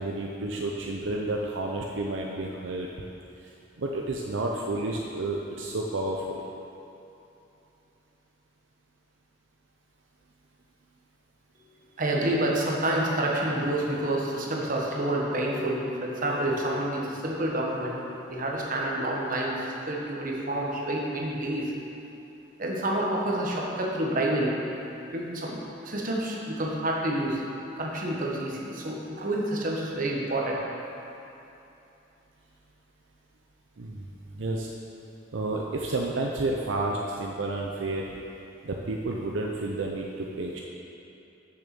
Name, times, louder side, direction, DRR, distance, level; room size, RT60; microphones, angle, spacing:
voice 1, 0.0-2.9 3.8-6.4 33.8-34.1 34.3-34.7 35.3-38.2 38.6-40.6, right 2 dB, 75° right, -1 dB, 0.6 m, -31 dB
voice 2, 12.0-18.0 18.3-21.7 22.6-24.6 25.1-27.4 27.8-30.5, right 1 dB, 45° right, -2 dB, 1.2 m, -28 dB
7.1 x 6.6 x 5.9 m, 2.9 s
head